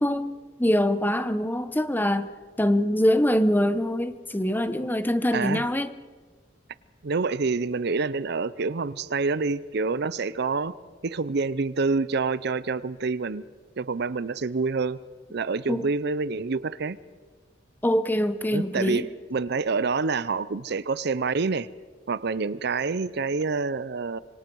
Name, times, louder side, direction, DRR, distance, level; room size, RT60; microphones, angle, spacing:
voice 1, 0.0-2.3 2.6-5.9 15.7-15.9 17.8-19.0, left 1 dB, 10° left, 0.8 m, -24 dB
voice 2, 5.3-5.7 7.0-10.7 11.0-13.4 13.8-15.0 15.3-17.0 18.5-21.7 22.1-24.2, right 4 dB, 60° right, 0.6 m, -27 dB
26.0 x 23.5 x 4.7 m
head